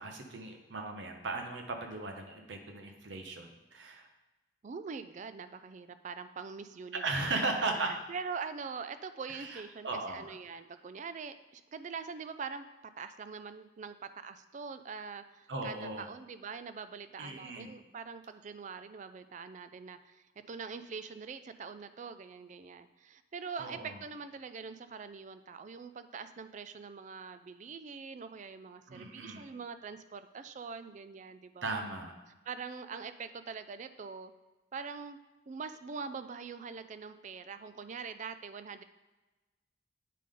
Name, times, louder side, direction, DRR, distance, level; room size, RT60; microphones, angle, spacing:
voice 1, 0.0-4.1 6.9-7.9 9.3-10.3 15.5-16.0 17.2-17.7 23.6-24.0 28.9-29.5 31.6-32.1, right 3 dB, 70° right, 4 dB, 0.9 m, -37 dB
voice 2, 4.6-7.0 7.3-31.6 32.5-34.3 34.7-35.2 35.5-38.8, right 5 dB, 40° right, 11 dB, 0.3 m, -43 dB
8.4 x 5.1 x 3.7 m, 1.1 s
head